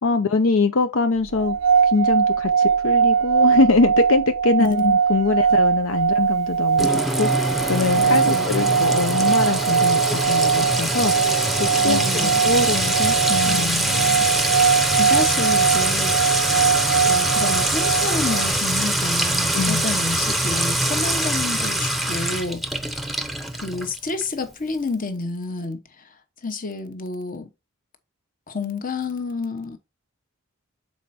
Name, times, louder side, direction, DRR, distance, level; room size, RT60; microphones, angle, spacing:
voice 1, 0.0-1.6 1.8-6.9 7.2-11.3 11.6-13.8 19.5-19.8, left 3 dB, 70° left, 0.6 m, -23 dB
sound 1, 1.3-18.5, right 6 dB, 70° right, 0.3 m, -21 dB
voice 2, 4.6-4.9 8.0-8.9 11.8-12.4 13.4-14.3 14.7-16.1 17.1-22.6 23.5-25.8 26.4-27.5 28.5-29.8, left 3 dB, 40° left, 1.1 m, -29 dB
Sink (filling or washing) / Trickle dribble / Fill (with liquid), 6.8-24.2, right 1 dB, ahead, 0.7 m, -23 dB
7.0 x 4.3 x 4.2 m
head